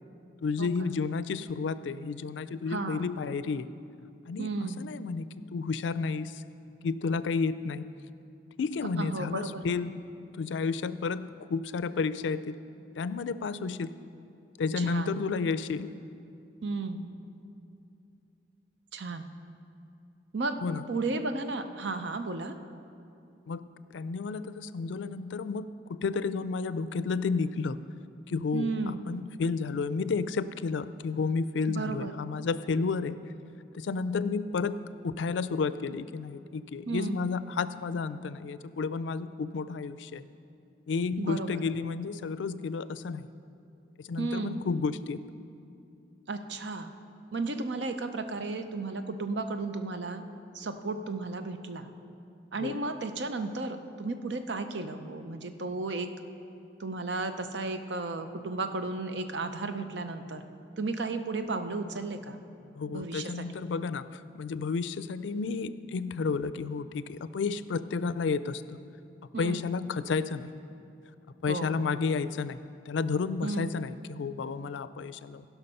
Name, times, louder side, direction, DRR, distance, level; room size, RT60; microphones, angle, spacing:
voice 1, 0.4-3.7 4.3-6.4 6.8-7.8 8.6-10.0 10.3-12.6 13.0-13.9 14.6-15.9 20.6-20.8 23.5-23.6 23.9-27.8 28.3-33.2 33.7-34.8 35.0-40.3 40.9-43.3 44.0-45.2 52.6-52.8 62.8-68.6 69.4-70.5 71.4-72.6 72.9-75.4, left 4 dB, 85° left, 14 dB, 0.4 m, -31 dB
voice 2, 2.7-3.1 4.4-4.8 9.0-9.6 14.8-15.2 16.6-17.1 18.9-19.3 20.3-20.6 20.9-22.5 28.5-29.0 31.7-32.1 36.9-37.2 41.2-41.6 44.2-44.6 46.3-46.9 47.3-50.2 50.5-51.9 52.5-56.1 56.8-60.5 60.8-62.4 62.9-63.4 69.3-69.7 71.5-71.9 73.4-73.7, right 3 dB, 75° right, 8 dB, 0.7 m, -34 dB
16.5 x 5.9 x 5.4 m, 2.6 s
head